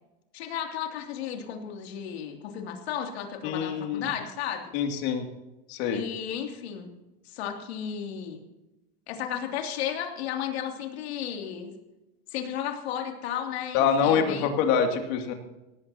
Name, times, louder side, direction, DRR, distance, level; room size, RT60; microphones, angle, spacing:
voice 1, 0.3-4.7 5.9-6.9 7.2-8.4 9.1-11.7 12.3-14.5, left 9 dB, 85° left, 3 dB, 2.9 m, -34 dB
voice 2, 3.4-4.1 4.7-5.2 5.7-6.0 13.7-15.3, left 7 dB, 55° left, 4 dB, 2.7 m, -25 dB
18.0 x 15.0 x 2.9 m, 1.0 s
supercardioid pair, 145°, 31 cm